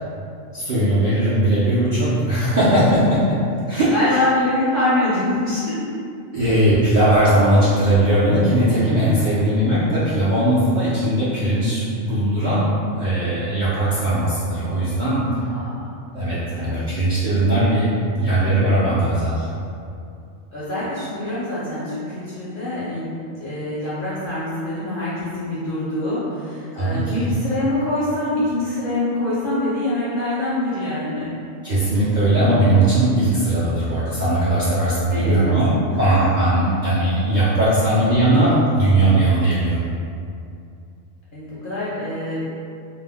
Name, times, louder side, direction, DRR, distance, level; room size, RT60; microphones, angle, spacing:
voice 1, 0.5-3.4 3.7-4.2 6.3-12.7 13.0-15.3 16.1-17.9 18.2-19.5 26.7-27.3 31.6-39.9, right 1 dB, 60° right, -11 dB, 0.5 m, -19 dB
voice 2, 3.9-5.9 15.5-15.8 16.5-16.9 20.5-23.1 23.4-31.4 35.1-35.5 36.1-36.2 41.3-42.4, left 1 dB, 60° left, -10 dB, 0.5 m, -24 dB
2.5 x 2.0 x 3.4 m, 2.5 s
omnidirectional pair, 1.4 m